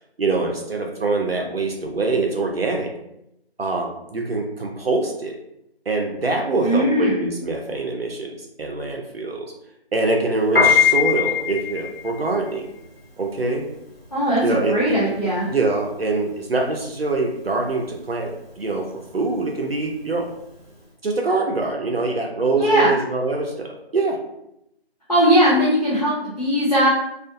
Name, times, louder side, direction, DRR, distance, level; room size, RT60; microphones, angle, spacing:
voice 1, 0.2-2.9 3.6-5.4 5.9-9.5 9.9-12.7 13.2-13.7 14.4-15.0 15.5-20.3 21.0-24.2, right 3 dB, 65° right, 1 dB, 0.5 m, -24 dB
voice 2, 6.6-7.3 14.1-15.5 22.5-23.0 25.1-26.9, equal, 40° left, -7 dB, 0.5 m, -19 dB
Piano, 10.4-20.8, left 7 dB, 65° left, 1.1 m, -23 dB
2.4 x 2.3 x 2.5 m, 0.81 s
figure-of-eight pair, 175°, 32 cm